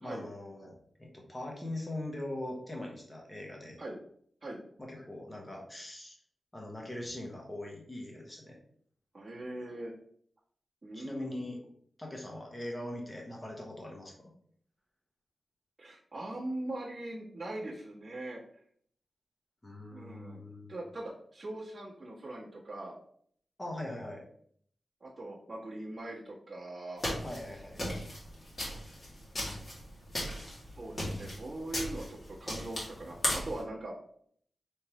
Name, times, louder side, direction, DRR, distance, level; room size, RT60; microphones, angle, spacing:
voice 1, 0.0-3.8 4.8-6.2 6.5-8.6 10.9-11.6 12.0-14.3 19.6-20.8 23.6-24.2 27.2-27.8, left 1 dB, 15° left, -1 dB, 1.0 m, -41 dB
voice 2, 9.1-9.9 10.8-11.4 15.8-18.4 19.9-20.4 20.7-22.9 25.0-27.0 30.6-34.0, right 1 dB, 25° right, -7 dB, 1.3 m, -41 dB
sound 1, 27.0-33.6, equal, 35° left, 1.7 m, -37 dB
5.1 x 3.1 x 3.0 m, 0.63 s
wide cardioid pair, 175°, 0 cm